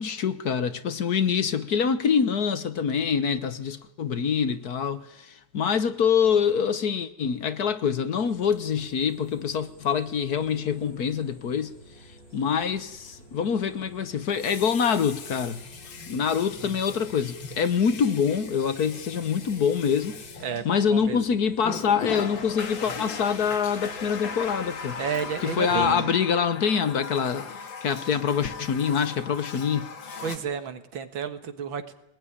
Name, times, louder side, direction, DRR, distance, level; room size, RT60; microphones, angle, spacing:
voice 1, 0.0-11.7 12.3-15.6 16.1-20.2 20.6-25.0 25.4-27.5 27.8-29.9, left 7 dB, 55° left, 1.6 m, -25 dB
sound 1, 8.2-26.0, right 1 dB, 30° left, 7.4 m, -51 dB
Water tap faucet, 10.7-10.8 14.2-21.1 21.6-30.4, left 5 dB, 75° left, 2.6 m, -38 dB
voice 2, 20.4-21.2 25.0-26.1 30.2-31.9, right 7 dB, 85° right, 2.4 m, -32 dB
22.0 x 20.0 x 10.0 m
omnidirectional pair, 2.1 m